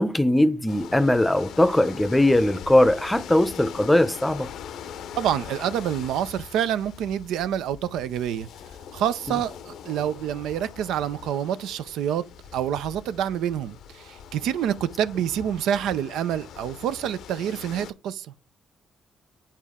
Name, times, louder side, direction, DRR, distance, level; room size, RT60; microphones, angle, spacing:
voice 1, 0.0-4.5, left 1 dB, 10° left, 0.6 m, -20 dB
sound 1, 0.7-17.9, left 8 dB, 80° left, 0.6 m, -42 dB
voice 2, 5.2-8.5 8.9-12.3 12.5-18.3, right 10 dB, 85° right, 0.5 m, -27 dB
9.1 x 4.3 x 3.6 m
cardioid pair, 90°, 0 cm